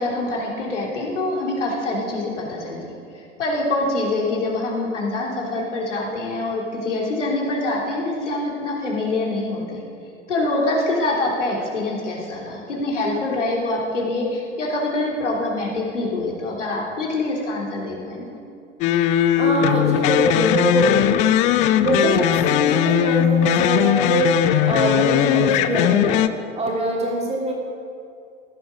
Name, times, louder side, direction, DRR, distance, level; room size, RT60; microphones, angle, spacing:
voice 1, 0.0-9.8 10.3-18.4, left 2 dB, 70° left, -3 dB, 3.3 m, -25 dB
sound 1, 18.8-26.3, left 10 dB, 20° left, 0.4 m, -19 dB
voice 2, 19.4-21.0 21.8-24.3 24.6-26.2 26.5-27.5, right 2 dB, 15° right, -3 dB, 3.2 m, -23 dB
16.5 x 11.5 x 5.1 m, 2.4 s
figure-of-eight pair, 90°, 38 cm